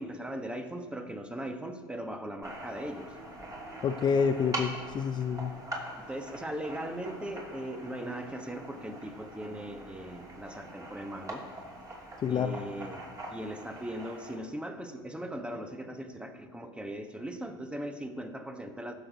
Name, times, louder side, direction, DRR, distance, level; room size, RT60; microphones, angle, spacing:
voice 1, 0.0-3.1 6.0-11.4 12.3-18.9, right 1 dB, 10° right, 6 dB, 1.2 m, -39 dB
sound 1, 2.4-14.4, right 1 dB, 25° right, 2.8 m, -43 dB
voice 2, 3.8-5.5 12.2-12.6, left 6 dB, 35° left, 7 dB, 0.6 m, -28 dB
16.0 x 6.4 x 4.1 m, 1.5 s
hypercardioid pair, 80°, 13 cm